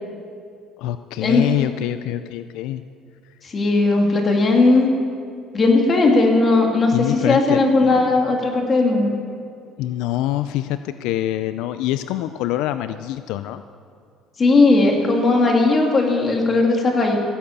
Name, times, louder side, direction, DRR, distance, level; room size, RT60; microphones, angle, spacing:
voice 1, 0.8-2.8 6.9-7.6 9.8-13.6, left 13 dB, 80° left, 11 dB, 0.4 m, -25 dB
voice 2, 3.4-4.9 5.5-9.1 14.4-17.2, left 3 dB, 30° left, 1 dB, 2.5 m, -17 dB
16.0 x 10.0 x 7.3 m, 2.3 s
cardioid pair, 130°, 0 cm